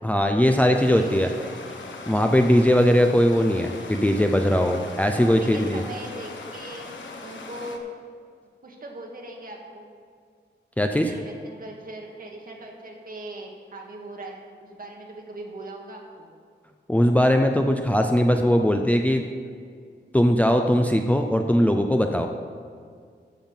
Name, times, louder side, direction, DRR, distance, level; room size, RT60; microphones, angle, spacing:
voice 1, 0.0-1.3 2.1-5.8 10.8-11.1 16.9-19.2 20.1-22.3, equal, 10° left, 4 dB, 0.5 m, -20 dB
Stream, 0.7-7.8, left 3 dB, 85° left, 1.3 m, -40 dB
voice 2, 0.9-1.9 5.2-7.9 8.6-9.9 10.9-16.3, right 2 dB, 50° right, 0 dB, 1.9 m, -40 dB
14.5 x 5.7 x 7.3 m, 2.1 s
wide cardioid pair, 160°, 19 cm